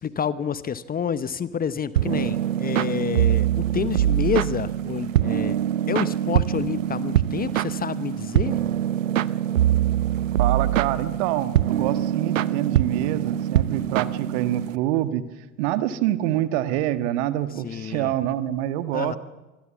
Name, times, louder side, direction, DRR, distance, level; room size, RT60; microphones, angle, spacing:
voice 1, 0.0-5.6 5.9-8.6 17.6-18.1 18.9-19.2, left 7 dB, 25° left, 16 dB, 0.9 m, -28 dB
sound 1, 2.0-14.8, right 11 dB, 75° right, 0.8 m, -23 dB
voice 2, 10.4-15.2 15.6-19.2, right 13 dB, 55° right, 11 dB, 1.6 m, -26 dB
26.0 x 21.0 x 7.3 m, 1.1 s
figure-of-eight pair, 75°, 39 cm